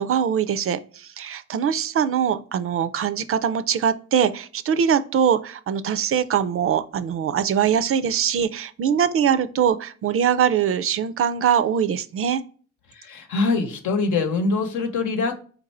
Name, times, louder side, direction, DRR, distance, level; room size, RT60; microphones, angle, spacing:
voice 1, 0.0-12.4, right 8 dB, 45° right, 0.4 m, -22 dB
voice 2, 13.0-15.4, left 3 dB, 75° left, 0.9 m, -23 dB
4.4 x 2.6 x 4.1 m
cardioid pair, 90°, 30 cm